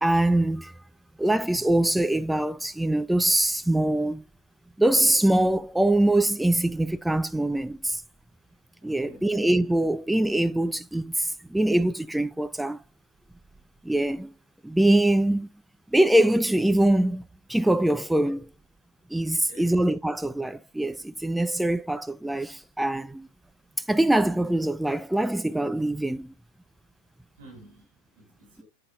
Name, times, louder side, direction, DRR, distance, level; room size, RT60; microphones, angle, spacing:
voice 1, 0.0-0.7 1.2-4.2 4.8-8.0 8.8-12.8 13.8-14.3 14.6-15.5 15.9-18.5 19.1-23.3 23.9-26.3, right 1 dB, 5° right, 0.3 m, -23 dB
voice 2, 8.8-9.3 19.4-19.7 21.4-21.6 27.3-28.6, right 1 dB, 55° right, 4.7 m, -51 dB
11.5 x 7.7 x 2.2 m
figure-of-eight pair, 90°, 0 cm